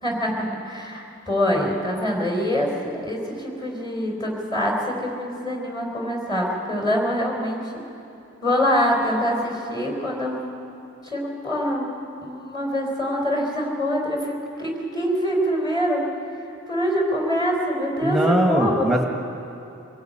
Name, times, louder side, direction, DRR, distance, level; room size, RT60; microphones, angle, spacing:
voice 1, 0.0-7.7 8.4-10.4 11.0-11.9 12.2-16.0 16.7-18.9, equal, 20° left, 1 dB, 4.1 m, -24 dB
voice 2, 18.0-19.0, right 1 dB, ahead, 1 dB, 1.6 m, -20 dB
24.0 x 17.5 x 8.9 m, 2.8 s
head